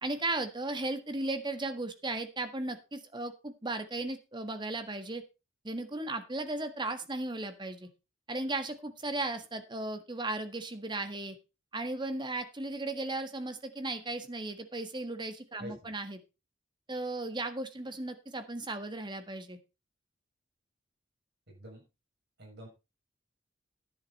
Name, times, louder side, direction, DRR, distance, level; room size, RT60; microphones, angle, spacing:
voice 1, 0.0-5.2 5.6-7.9 8.3-11.3 11.7-16.2 16.9-19.6, right 2 dB, 25° right, 9 dB, 1.6 m, -36 dB
voice 2, 15.6-15.9 21.5-21.8 22.4-22.7, equal, 60° right, -1 dB, 7.0 m, -46 dB
10.5 x 10.5 x 4.3 m, 0.28 s
head